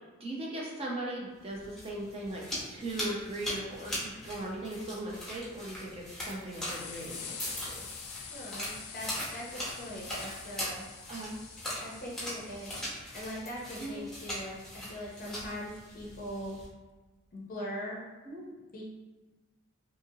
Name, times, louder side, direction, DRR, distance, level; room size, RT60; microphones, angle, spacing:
voice 1, 0.2-7.8 11.1-11.3 13.8-14.0 18.3-18.4, right 1 dB, 25° right, -3 dB, 0.4 m, -39 dB
sound 1, 1.5-16.7, left 1 dB, ahead, 0.8 m, -41 dB
sound 2, 3.7-3.8 4.1-4.3 4.9-5.6 6.2-6.3 6.6-13.0 15.1-15.2 16.5-16.6, left 6 dB, 90° left, 0.4 m, -46 dB
voice 2, 8.3-10.8 11.8-14.6 14.9-16.6 17.3-18.0 18.7-18.8, equal, 40° left, -3 dB, 0.5 m, -41 dB
2.7 x 2.5 x 2.7 m, 1.2 s
head